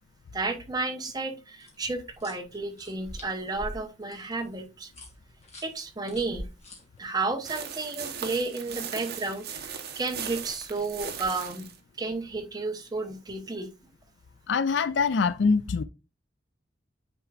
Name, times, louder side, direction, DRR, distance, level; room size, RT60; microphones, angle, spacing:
voice 1, 0.3-4.9 5.6-6.5 7.0-11.7 12.0-13.7, right 3 dB, 20° right, 0.9 m, -32 dB
sound 1, 1.6-7.5 10.1-11.6, equal, 35° left, 1.8 m, -46 dB
sound 2, 7.4-11.8, right 7 dB, 55° right, 1.0 m, -38 dB
voice 2, 14.5-15.8, left 5 dB, 65° left, 0.4 m, -24 dB
8.9 x 4.5 x 2.4 m
head